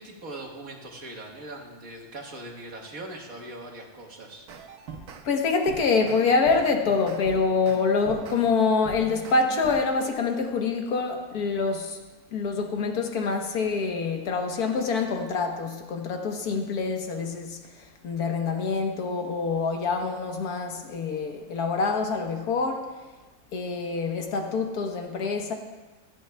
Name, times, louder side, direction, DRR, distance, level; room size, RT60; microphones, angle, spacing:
voice 1, 0.0-4.5, right 2 dB, 65° right, 0 dB, 1.9 m, -41 dB
sound 1, 4.5-5.2 5.7-10.1, right 5 dB, 90° right, 1.4 m, -42 dB
voice 2, 5.2-12.0 12.3-22.9 23.5-25.5, left 4 dB, 90° left, 4 dB, 1.6 m, -26 dB
16.5 x 12.5 x 2.2 m, 1.2 s
omnidirectional pair, 1.6 m